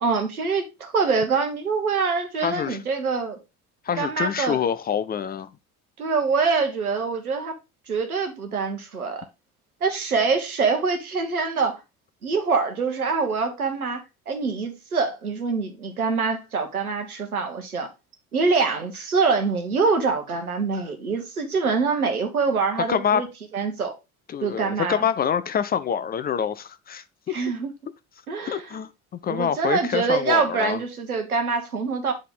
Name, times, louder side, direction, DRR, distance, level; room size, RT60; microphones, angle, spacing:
voice 1, 0.0-3.4 3.9-4.6 6.0-7.5 7.9-9.2 9.8-11.8 12.2-14.0 14.3-17.9 18.3-23.3 23.5-23.9 24.4-25.1 27.3-27.7 28.3-28.8 29.3-32.1, right 4 dB, 90° right, 1.0 m, -25 dB
voice 2, 2.4-2.8 3.9-5.5 22.9-23.3 24.3-27.4 28.4-30.8, left 8 dB, 25° left, 0.4 m, -26 dB
8.5 x 3.7 x 3.7 m
figure-of-eight pair, 60°, 42 cm